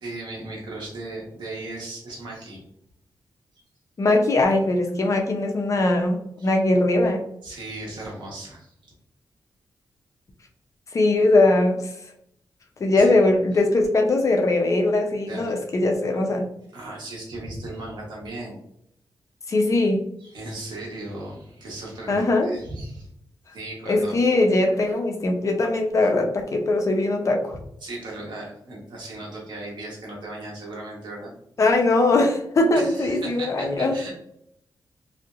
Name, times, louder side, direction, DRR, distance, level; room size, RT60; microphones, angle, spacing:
voice 1, 0.0-2.6 6.4-6.5 7.4-8.9 13.0-13.1 15.3-15.6 16.7-18.6 20.2-23.1 23.5-24.2 27.8-31.3 32.7-34.1, right 2 dB, 80° right, -3 dB, 1.3 m, -37 dB
voice 2, 4.0-7.2 10.9-11.8 12.8-16.5 19.5-20.1 22.1-22.5 23.9-27.5 31.6-34.0, left 2 dB, 45° left, 2 dB, 0.6 m, -21 dB
3.2 x 2.7 x 2.5 m, 0.74 s
wide cardioid pair, 105°, 8 cm